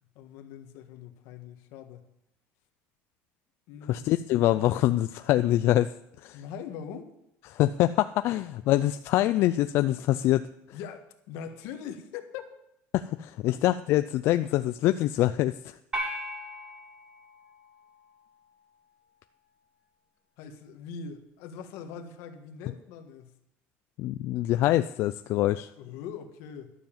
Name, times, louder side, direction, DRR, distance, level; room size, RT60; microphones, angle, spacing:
voice 1, 0.1-2.0 3.7-4.2 6.3-7.1 8.6-8.7 10.7-12.6 20.4-23.3 25.8-26.7, left 7 dB, 75° left, 6 dB, 1.5 m, -42 dB
voice 2, 3.9-5.9 6.2-6.4 7.5-10.5 12.9-15.8 24.0-25.7, left 14 dB, 55° left, 11 dB, 0.3 m, -25 dB
sound 1, 15.9-18.4, equal, 20° right, 2.0 m, -38 dB
12.0 x 7.1 x 7.3 m, 0.81 s
cardioid pair, 155°, 5 cm